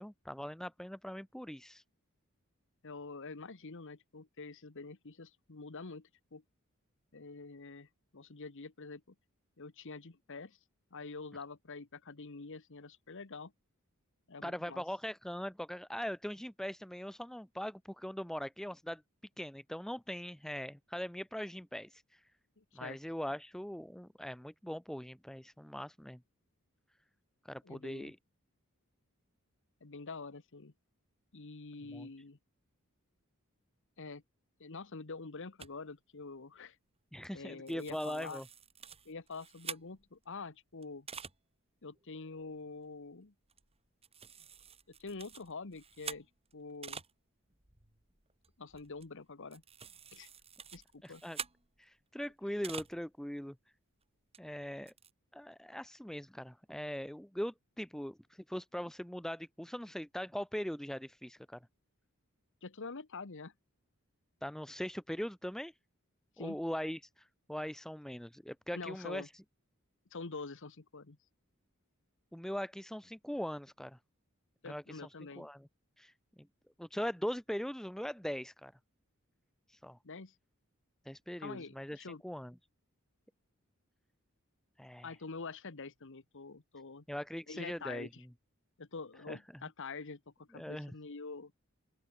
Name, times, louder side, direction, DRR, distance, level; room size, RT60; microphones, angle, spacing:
voice 1, 0.0-1.8 14.4-19.0 19.4-22.2 22.7-26.2 27.4-28.2 31.9-32.1 37.1-38.5 51.0-51.4 51.8-53.6 54.4-54.9 55.3-61.6 64.4-65.7 66.4-69.3 72.3-74.0 74.7-75.0 75.4-75.7 76.0-76.1 76.4-76.5 76.8-78.7 79.7-80.0 81.1-82.5 84.8-85.1 87.1-88.1 89.3-89.4 90.5-90.9, equal, ahead, 0.6 m, -41 dB
voice 2, 2.8-6.4 7.1-9.1 9.6-10.6 10.9-13.5 14.3-14.8 22.6-23.0 27.6-28.1 29.8-30.7 31.3-32.4 34.0-34.2 34.6-36.8 37.3-38.4 39.0-41.1 41.8-43.3 44.9-46.3 46.5-47.0 48.6-49.6 50.1-50.3 50.7-51.2 62.6-63.5 66.4-66.6 68.7-69.3 70.1-71.2 74.6-75.5 80.0-80.3 81.4-82.2 85.0-87.0 87.5-88.2 88.8-91.5, left 4 dB, 60° left, 1.2 m, -46 dB
sound 1, 35.6-35.7 37.2-37.4 37.7-40.2 40.8-41.4 41.9-42.0 42.4-42.6 43.5-43.8 44.0-47.1 47.4-53.0 53.4-53.5 54.3-54.4 54.6-55.1, right 6 dB, 30° right, 2.9 m, -48 dB
open air
head